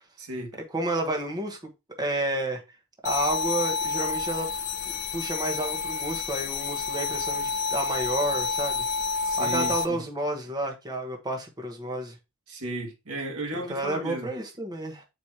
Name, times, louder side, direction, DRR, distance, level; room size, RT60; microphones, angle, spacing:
voice 1, 0.2-0.6 9.2-10.0 12.5-14.3, right 1 dB, 80° right, 2.1 m, -35 dB
voice 2, 0.7-1.6 2.0-2.6 3.0-4.5 5.1-8.8 9.4-12.2 13.6-15.1, right 1 dB, 20° right, 1.2 m, -30 dB
sound 1, 3.0-9.8, left 4 dB, 70° left, 0.8 m, -29 dB
8.1 x 4.8 x 2.9 m
head